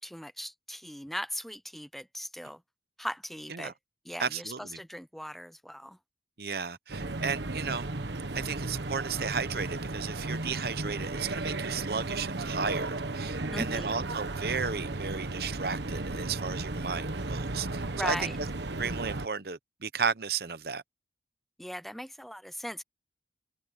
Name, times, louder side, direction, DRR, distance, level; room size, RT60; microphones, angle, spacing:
voice 1, 0.0-2.6 3.0-3.7 4.1-6.0 13.5-14.1 18.0-18.4 21.6-22.8, equal, ahead, 0.5 m, -38 dB
voice 2, 4.2-4.8 6.4-7.9 8.3-18.5 18.8-20.8, right 5 dB, 60° right, 0.8 m, -34 dB
sound 1, 6.9-19.3, right 2 dB, 75° right, 1.3 m, -35 dB
head